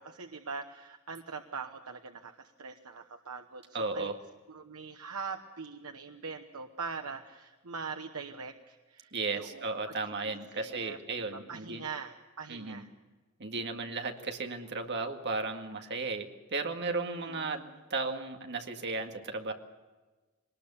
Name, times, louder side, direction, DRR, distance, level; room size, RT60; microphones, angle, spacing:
voice 1, 0.0-4.1 4.5-9.7 10.2-12.9 13.5-13.9 17.1-17.7, right 5 dB, 85° right, 5 dB, 1.1 m, -43 dB
voice 2, 3.7-4.2 9.1-11.8 12.5-12.8 13.4-19.5, right 3 dB, 55° right, 5 dB, 2.0 m, -35 dB
22.5 x 19.5 x 7.1 m, 1.2 s
head